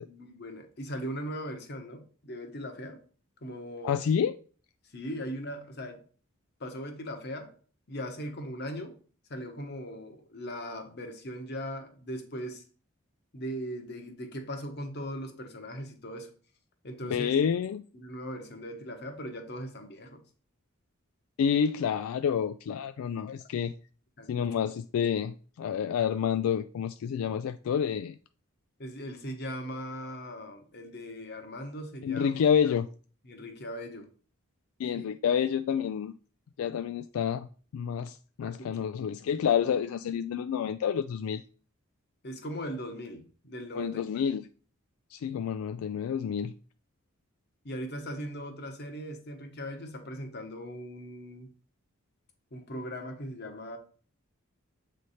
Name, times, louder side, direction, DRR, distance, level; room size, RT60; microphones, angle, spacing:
voice 1, 0.0-3.0 3.4-4.1 4.9-6.0 6.6-7.6 7.9-9.0 9.3-12.7 13.3-16.3 16.8-17.4 17.9-20.2 24.2-24.5 28.8-32.3 33.2-34.1 34.9-35.1 38.4-38.9 42.2-44.0 47.6-51.5 52.5-53.8, equal, 50° left, 1.1 m, -39 dB
voice 2, 3.8-4.3 17.1-17.8 21.4-23.7 24.3-28.2 32.0-32.9 34.8-36.1 36.6-37.5 37.7-41.4 43.8-44.4 45.1-46.5, left 7 dB, 80° left, 0.3 m, -28 dB
7.6 x 3.3 x 4.2 m
head